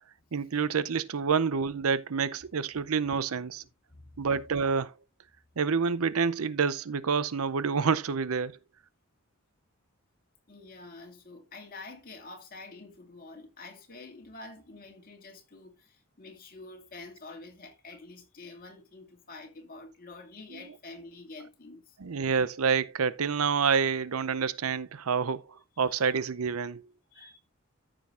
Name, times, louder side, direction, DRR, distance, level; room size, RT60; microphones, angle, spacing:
voice 1, 0.3-3.6 4.2-4.9 5.6-8.6 20.5-20.8 22.0-26.8, right 6 dB, 80° right, 0.6 m, -28 dB
voice 2, 10.5-22.0 25.2-25.3 25.8-26.1 27.1-27.4, left 3 dB, 40° left, 2.4 m, -47 dB
14.0 x 6.3 x 2.5 m
head